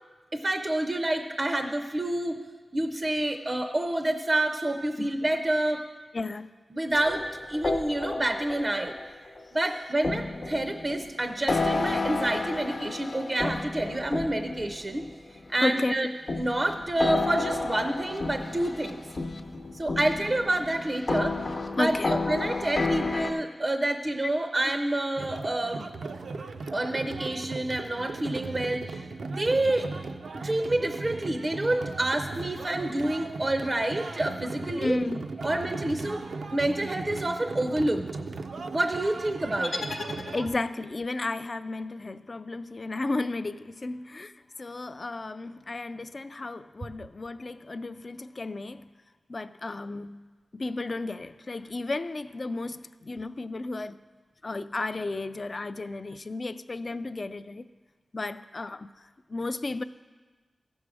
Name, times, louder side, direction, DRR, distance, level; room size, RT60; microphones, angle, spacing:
voice 1, 0.3-2.4 2.7-5.8 6.7-7.2 7.5-8.9 9.5-15.0 15.5-16.1 16.4-19.1 19.7-21.4 21.7-25.9 26.7-29.9 30.4-35.0 35.4-36.2 36.5-38.1 38.7-39.9, right 1 dB, 30° right, 0.5 m, -28 dB
voice 2, 6.1-6.5 15.6-16.1 21.8-22.1 34.8-35.3 40.3-44.3 44.6-48.9 49.3-50.2 50.5-54.0 54.4-57.6 58.1-58.9 59.3-59.8, left 2 dB, 40° left, 0.3 m, -33 dB
sound 1, 6.9-9.4 10.0-15.5 16.3-23.3, left 3 dB, 55° left, 0.8 m, -31 dB
sound 2, 25.2-40.5, right 3 dB, 85° right, 0.5 m, -37 dB
sound 3, 39.6-40.9, left 2 dB, 85° left, 0.8 m, -36 dB
15.0 x 6.2 x 4.8 m
wide cardioid pair, 110°, 0 cm